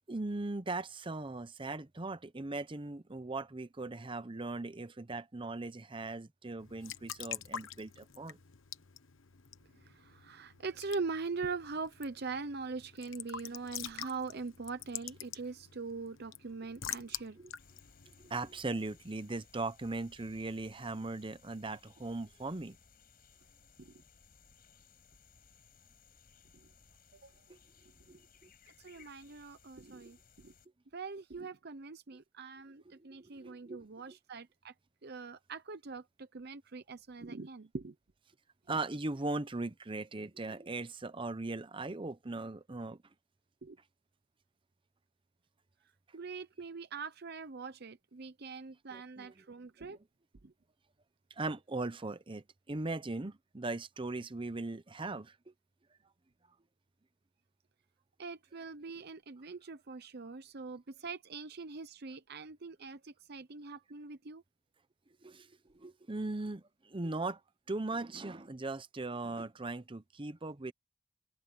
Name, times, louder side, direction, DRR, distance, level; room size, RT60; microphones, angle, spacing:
voice 1, 0.1-8.4 17.4-17.5 18.2-22.8 27.5-27.6 28.1-28.5 32.8-34.2 38.7-43.0 48.9-49.5 51.4-55.5 65.2-67.4 67.7-70.7, right 2 dB, 25° right, 0.8 m, -39 dB
Raindrop / Drip / Trickle dribble, 6.6-19.1, left 9 dB, 85° left, 1.1 m, -47 dB
voice 2, 9.8-17.4 23.8-23.9 27.2-27.3 28.8-30.5 30.9-34.7 35.0-37.9 43.6-43.8 46.1-50.0 50.4-50.5 58.2-64.4, right 4 dB, 55° right, 0.8 m, -42 dB
sound 1, 17.6-30.7, left 5 dB, 50° left, 5.6 m, -63 dB
head